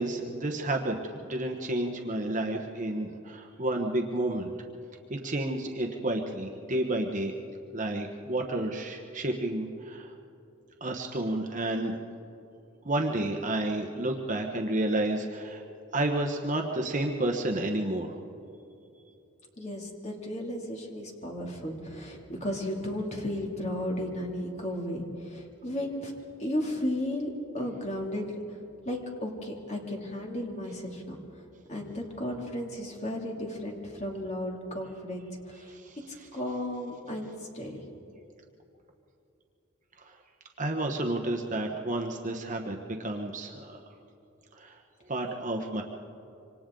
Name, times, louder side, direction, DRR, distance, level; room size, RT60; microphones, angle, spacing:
voice 1, 0.0-4.5 5.1-7.3 7.7-10.1 10.8-12.0 12.8-15.6 15.9-18.1 35.7-36.0 40.0-40.2 40.6-43.8 44.6-44.8 45.1-45.8, right 1 dB, 35° right, 2 dB, 1.1 m, -31 dB
voice 2, 19.6-26.1 26.4-28.6 28.8-31.1 31.7-35.8 36.3-37.8, left 1 dB, 35° left, 0 dB, 2.7 m, -34 dB
26.5 x 25.5 x 3.8 m, 2.8 s
head